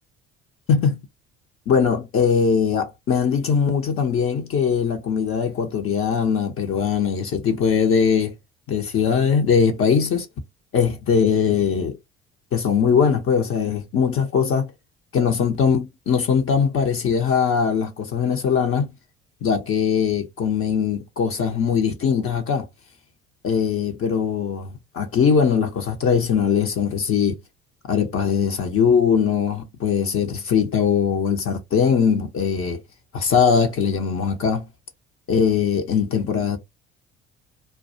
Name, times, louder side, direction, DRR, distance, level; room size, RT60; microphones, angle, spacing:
voice 1, 1.7-8.3 8.7-10.3 10.7-11.9 12.5-14.7 15.1-18.9 19.4-22.7 23.4-24.7 24.9-27.4 27.9-32.8 33.1-34.6 35.3-36.6, left 6 dB, 40° left, 0.7 m, -21 dB
2.3 x 2.2 x 2.6 m
hypercardioid pair, 55°, 33 cm